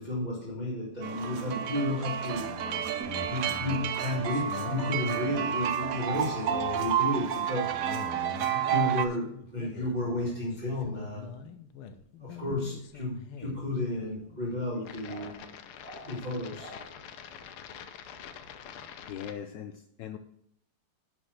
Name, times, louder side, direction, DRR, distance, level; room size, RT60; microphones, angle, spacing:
voice 1, 0.0-2.9 3.3-8.2 8.5-11.3 12.2-15.4 15.8-16.9, left 1 dB, 20° right, -8 dB, 2.3 m, -33 dB
sound 1, 1.0-9.0, right 10 dB, 90° right, 0.7 m, -31 dB
sound 2, 2.3-19.3, left 7 dB, 90° left, 1.7 m, -45 dB
voice 2, 19.1-20.2, left 9 dB, 70° left, 8 dB, 1.2 m, -40 dB
11.5 x 4.5 x 6.5 m, 0.71 s
omnidirectional pair, 2.3 m